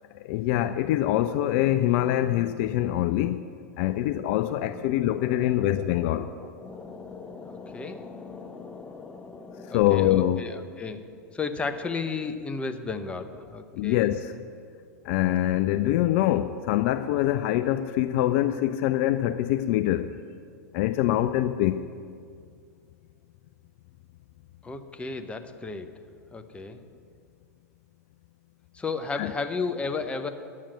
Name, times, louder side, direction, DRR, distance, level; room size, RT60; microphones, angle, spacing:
voice 1, 0.1-3.4 3.8-6.3 9.7-10.4 13.7-14.3 15.0-20.2 20.7-21.8 29.2-29.3, left 13 dB, 50° left, 0.4 m, -24 dB
voice 2, 3.8-11.0 11.3-14.1 24.6-25.9 26.3-26.8 28.7-30.3, left 4 dB, 10° left, 0.7 m, -35 dB
10.5 x 7.4 x 7.6 m
figure-of-eight pair, 95°, 9 cm